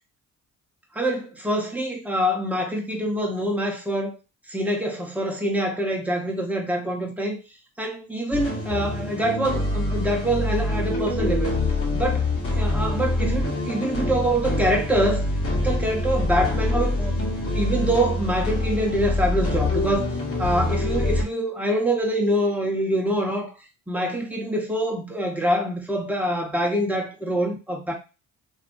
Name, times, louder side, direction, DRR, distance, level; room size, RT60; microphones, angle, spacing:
voice 1, 0.9-4.1 4.5-7.3 7.8-11.5 11.9-12.2 12.6-15.2 15.6-20.1 20.4-23.5 23.9-27.9, equal, 5° right, 0.9 m, -25 dB
sound 1, 8.3-21.2, left 2 dB, 40° left, 1.1 m, -25 dB
2.7 x 2.5 x 2.6 m
cardioid pair, 90°, 33 cm